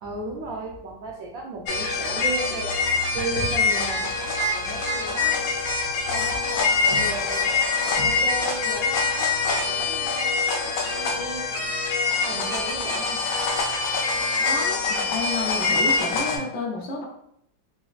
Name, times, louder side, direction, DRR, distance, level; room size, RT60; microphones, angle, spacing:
voice 1, 0.0-2.7 3.1-5.4 6.1-7.6 8.0-11.5 12.3-13.2, right 3 dB, 85° right, -2 dB, 0.7 m, -35 dB
sound 1, 1.7-16.4, left 4 dB, 90° left, 1.4 m, -24 dB
voice 2, 14.4-17.0, left 3 dB, 70° left, -2 dB, 0.8 m, -31 dB
4.0 x 2.4 x 2.4 m, 0.72 s
omnidirectional pair, 2.1 m